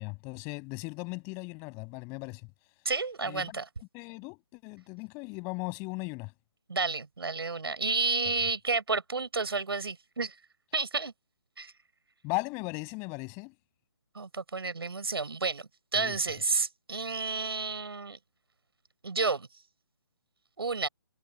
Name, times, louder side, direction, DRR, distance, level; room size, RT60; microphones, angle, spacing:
voice 1, 0.0-2.5 3.2-6.3 12.2-13.5 16.0-16.2, left 29 dB, 20° left, 6.9 m, -38 dB
voice 2, 2.8-3.6 6.7-10.3 10.7-11.1 11.6-11.7 14.1-18.2 19.0-19.5 20.6-20.9, right 4 dB, 70° right, 6.9 m, -31 dB
figure-of-eight pair, 145°, 13 cm